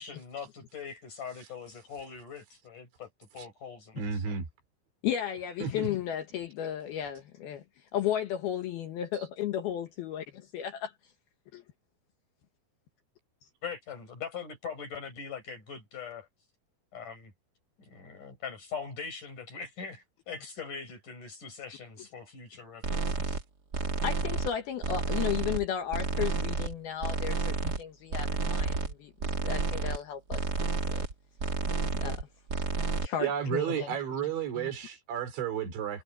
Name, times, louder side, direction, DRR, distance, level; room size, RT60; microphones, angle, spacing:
voice 1, 0.0-4.3 13.6-16.3 16.9-17.3 17.8-23.4, left 6 dB, 45° left, 8.7 m, -42 dB
voice 2, 4.0-4.5 5.6-5.9 33.2-36.0, right 8 dB, 90° right, 6.1 m, -32 dB
voice 3, 5.0-7.6 7.9-10.9 11.5-11.6 24.0-29.1 29.4-30.4 30.9-31.0 32.0-32.3 33.0-34.0 34.6-34.7, left 10 dB, 70° left, 2.9 m, -34 dB
sound 1, 22.8-23.4 23.7-24.5 24.8-25.6 25.9-26.7 27.0-27.8 28.1-28.9 29.2-30.0 30.3-31.1 31.4-32.2 32.5-33.1, right 4 dB, 35° right, 1.7 m, -30 dB
omnidirectional pair, 5.1 m